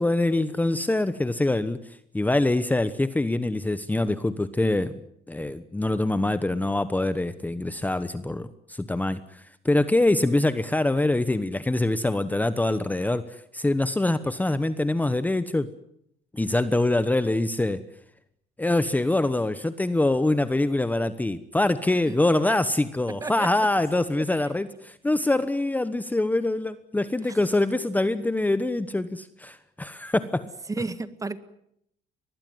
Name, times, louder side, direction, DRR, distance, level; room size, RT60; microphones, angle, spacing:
voice 1, 0.0-5.0 5.3-15.7 16.3-17.8 18.6-30.5, left 2 dB, 10° left, 12 dB, 1.0 m, -24 dB
voice 2, 23.2-23.5 27.2-27.4 30.7-31.4, right 3 dB, 20° right, 13 dB, 1.7 m, -32 dB
23.5 x 20.0 x 9.4 m, 0.73 s
cardioid pair, 110°, 17 cm